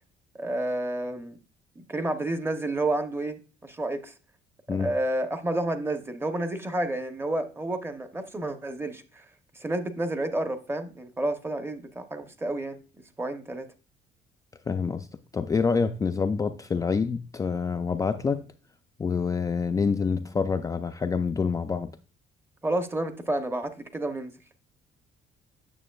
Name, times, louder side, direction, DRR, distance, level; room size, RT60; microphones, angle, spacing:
voice 1, 0.3-1.4 1.8-4.1 4.7-9.2 9.5-12.8 13.2-13.7 22.6-24.3, right 1 dB, 15° right, 0.7 m, -30 dB
voice 2, 14.7-15.1 15.3-18.4 19.0-21.9, left 5 dB, 20° left, 0.3 m, -27 dB
8.9 x 6.7 x 2.3 m
cardioid pair, 110°, 17 cm